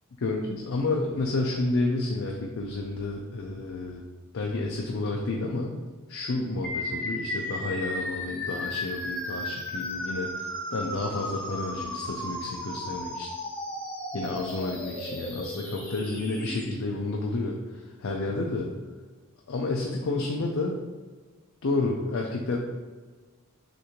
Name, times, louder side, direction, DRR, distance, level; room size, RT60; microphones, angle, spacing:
voice 1, 0.2-4.0 4.3-5.8 6.1-13.3 14.1-18.7 19.5-20.8 21.6-22.6, left 2 dB, 65° left, 0 dB, 0.5 m, -30 dB
sound 1, 6.6-16.6, left 1 dB, 5° left, 0.7 m, -35 dB
6.3 x 2.6 x 2.9 m, 1.3 s
head